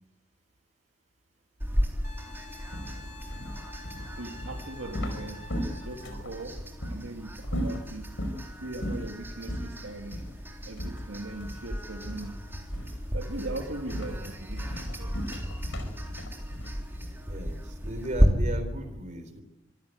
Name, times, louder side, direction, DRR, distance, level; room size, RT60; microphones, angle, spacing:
sound 1, 1.6-18.3, equal, 10° right, 3.7 m, -34 dB
Wind instrument woodwind instrument, 2.0-6.3 9.0-9.1, left 2 dB, 35° left, 2.6 m, -48 dB
sound 2, 2.7-6.3 6.8-7.0 7.4-8.4 8.8-9.1 9.5-9.7 10.1-10.3 10.8-11.7 12.0-12.4 12.7-13.0 13.4-17.3, equal, 70° left, 5.3 m, -36 dB
voice 1, 4.2-5.4 5.9-6.6 6.9-8.1 8.6-10.2 10.7-12.4 13.1-15.1, right 2 dB, 80° right, 4 dB, 2.0 m, -39 dB
voice 2, 17.3-19.4, right 1 dB, 40° right, 8 dB, 3.9 m, -37 dB
25.5 x 15.5 x 9.4 m, 0.92 s
head